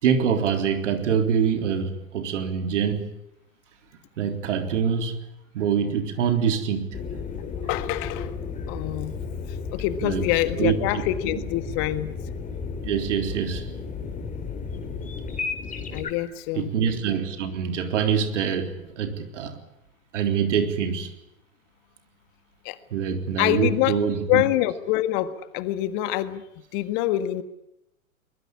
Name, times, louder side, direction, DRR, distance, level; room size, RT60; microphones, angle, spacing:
voice 1, 0.0-3.1 4.2-5.2 5.5-6.9 10.0-10.3 10.6-10.8 12.8-13.7 16.6-19.6 20.1-21.1 22.9-24.4, right 7 dB, 60° right, 6 dB, 3.8 m, -25 dB
sound 1, 6.9-16.1, left 5 dB, 20° left, 4.1 m, -33 dB
voice 2, 7.4-8.4 8.7-9.2 9.7-12.1 15.9-16.7 22.6-22.8 23.4-26.4 26.7-27.4, left 14 dB, 40° left, 12 dB, 1.7 m, -26 dB
23.5 x 21.0 x 9.8 m, 0.84 s
figure-of-eight pair, 95°, 42 cm